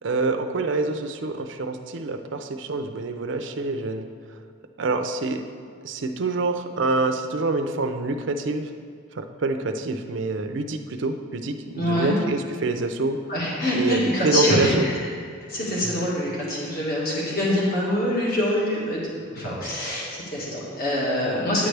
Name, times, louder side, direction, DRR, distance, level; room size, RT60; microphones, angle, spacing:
voice 1, 0.0-4.1 4.8-5.4 5.8-8.7 9.1-13.2 13.7-14.9 15.8-16.0, right 3 dB, 65° right, 6 dB, 0.5 m, -26 dB
voice 2, 11.8-12.2 13.3-14.9 15.5-21.7, left 1 dB, 45° left, -5 dB, 1.8 m, -25 dB
9.3 x 7.9 x 3.3 m, 2.2 s
head